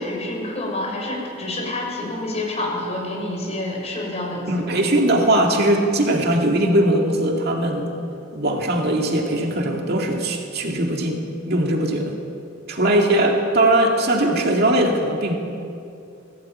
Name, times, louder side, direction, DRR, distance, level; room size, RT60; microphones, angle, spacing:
voice 1, 0.0-4.8 12.8-13.3, left 1 dB, 35° left, -1 dB, 5.6 m, -28 dB
voice 2, 4.5-7.9 8.3-12.1 12.7-15.3, right 1 dB, 55° right, 1 dB, 2.3 m, -20 dB
20.0 x 16.0 x 8.8 m, 2.6 s
head